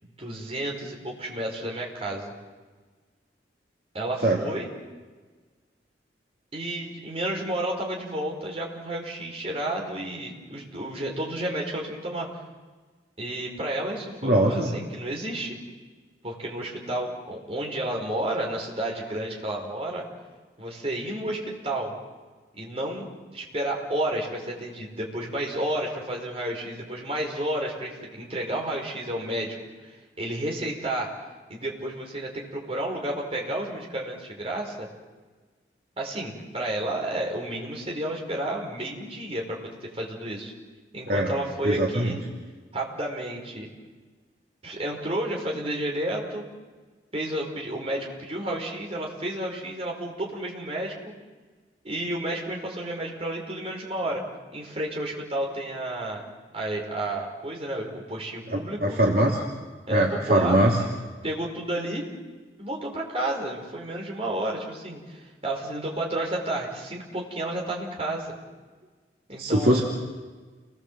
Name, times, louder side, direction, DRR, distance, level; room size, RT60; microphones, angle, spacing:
voice 1, 0.0-2.3 3.9-4.7 6.5-12.3 13.2-15.6 16.2-20.1 20.6-21.9 22.5-29.6 29.8-31.1 31.5-34.9 36.0-40.5 40.9-42.2 42.7-43.7 44.6-46.5 47.1-51.1 51.8-54.2 54.5-56.3 56.5-59.0 59.9-60.6 61.2-62.0 62.6-68.3 69.3-69.8, right 1 dB, 35° right, -1 dB, 5.3 m, -31 dB
voice 2, 14.2-14.8 41.1-41.3 41.6-42.2 58.5-59.4 59.9-60.8 69.4-69.8, right 1 dB, 55° right, -2 dB, 2.9 m, -22 dB
29.5 x 21.0 x 7.7 m, 1.4 s
head